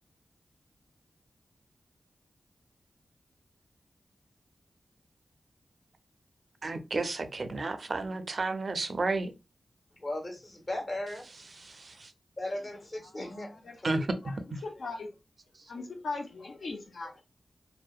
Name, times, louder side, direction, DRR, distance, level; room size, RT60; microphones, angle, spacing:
voice 1, 6.6-9.3 11.6-12.1 13.8-14.2, right 3 dB, 60° right, 0.4 m, -32 dB
voice 2, 10.0-11.4 12.4-13.9, left 1 dB, 50° left, 1.1 m, -37 dB
voice 3, 13.6-14.4 14.6-15.1 15.7-17.2, left 3 dB, 75° left, 0.5 m, -39 dB
2.7 x 2.0 x 2.3 m
cardioid pair, 50°, 0 cm